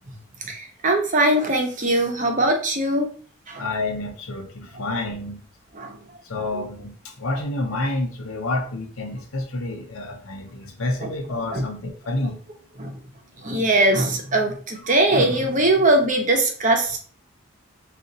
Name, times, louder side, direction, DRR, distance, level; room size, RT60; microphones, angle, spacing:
voice 1, 0.5-3.1 3.5-3.7 5.7-6.0 6.5-6.7 11.0-11.1 11.5-11.6 12.8-13.0 13.4-17.0, right 1 dB, 40° right, 3 dB, 0.8 m, -21 dB
voice 2, 3.6-5.5 6.3-12.4, left 2 dB, 90° left, 2 dB, 0.8 m, -29 dB
3.9 x 2.5 x 3.9 m, 0.43 s
head